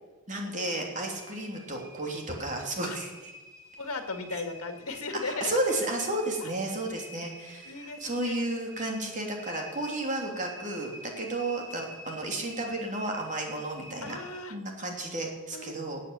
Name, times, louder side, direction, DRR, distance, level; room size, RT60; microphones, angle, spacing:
voice 1, 0.3-3.1 5.2-14.2 14.5-16.0, right 1 dB, 35° right, 1 dB, 3.0 m, -32 dB
sound 1, 0.7-14.4, equal, 15° right, 3.5 m, -48 dB
voice 2, 3.8-5.5 6.4-6.5 7.7-8.5 11.1-11.3 14.0-14.6 15.5-15.7, left 3 dB, 75° left, 7 dB, 1.8 m, -37 dB
17.5 x 8.5 x 7.3 m, 1.3 s
head